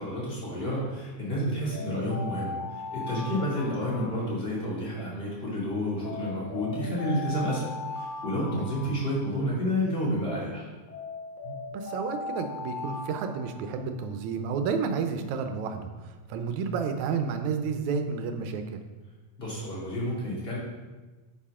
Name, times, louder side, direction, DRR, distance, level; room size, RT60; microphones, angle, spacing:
voice 1, 0.0-7.7 7.9-10.7 19.4-20.6, equal, 20° left, -6 dB, 2.7 m, -30 dB
sound 1, 1.7-4.9 6.0-9.8 10.9-14.1, left 3 dB, 80° left, 3.0 m, -39 dB
voice 2, 11.4-15.9 16.3-18.8, right 5 dB, 80° right, 7 dB, 2.2 m, -31 dB
9.9 x 7.2 x 3.7 m, 1.2 s
omnidirectional pair, 3.3 m